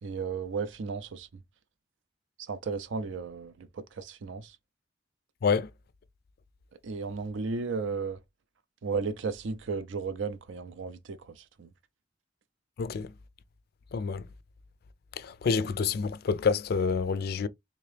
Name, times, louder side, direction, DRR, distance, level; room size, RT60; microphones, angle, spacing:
voice 1, 0.0-1.3 2.5-4.6 6.8-8.2 8.8-11.7, right 4 dB, 65° right, 0.5 m, -34 dB
voice 2, 13.9-14.2 15.2-17.5, left 5 dB, 50° left, 0.3 m, -27 dB
3.5 x 2.8 x 3.2 m
head